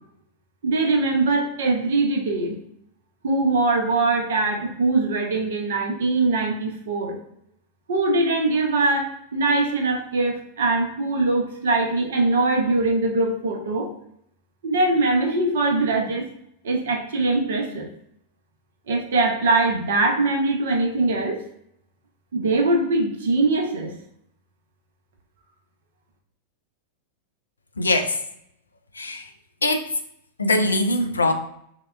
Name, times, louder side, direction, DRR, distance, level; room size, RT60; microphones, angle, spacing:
voice 1, 0.6-2.6 3.2-7.2 7.9-13.9 14.6-16.2 16.6-17.9 18.9-21.4 22.3-23.9, right 2 dB, 60° right, 2 dB, 0.6 m, -22 dB
voice 2, 27.8-28.2 28.9-29.2 29.6-29.9 30.4-31.3, left 2 dB, 75° left, 6 dB, 0.3 m, -21 dB
3.6 x 2.1 x 2.2 m, 0.73 s
figure-of-eight pair, 90°, 0 cm